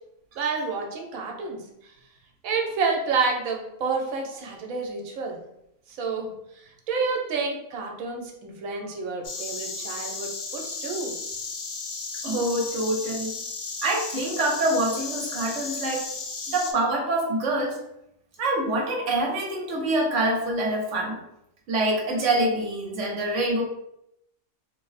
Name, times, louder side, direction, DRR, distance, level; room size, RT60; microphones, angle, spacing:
voice 1, 0.4-1.6 2.4-5.4 5.9-6.3 6.6-11.1, right 4 dB, 85° right, 1 dB, 1.1 m, -29 dB
Insect, 9.2-16.7, left 4 dB, 55° left, 0.6 m, -34 dB
voice 2, 12.2-13.3 13.8-16.1 16.5-17.8 18.4-21.2 21.7-23.6, right 1 dB, 65° right, -1 dB, 1.1 m, -25 dB
3.0 x 2.0 x 4.0 m, 0.81 s
omnidirectional pair, 1.4 m